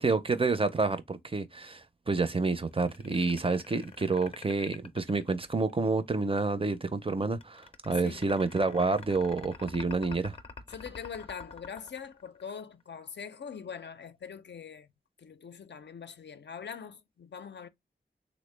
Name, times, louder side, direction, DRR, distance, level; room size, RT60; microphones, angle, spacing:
voice 1, 0.0-10.4, right 3 dB, 30° right, 0.4 m, -29 dB
sound 1, 2.7-5.9 7.3-12.8, left 4 dB, 35° left, 0.5 m, -47 dB
voice 2, 10.7-14.9 15.2-17.7, left 6 dB, 85° left, 0.4 m, -43 dB
3.4 x 2.0 x 3.2 m
wide cardioid pair, 65°, 18 cm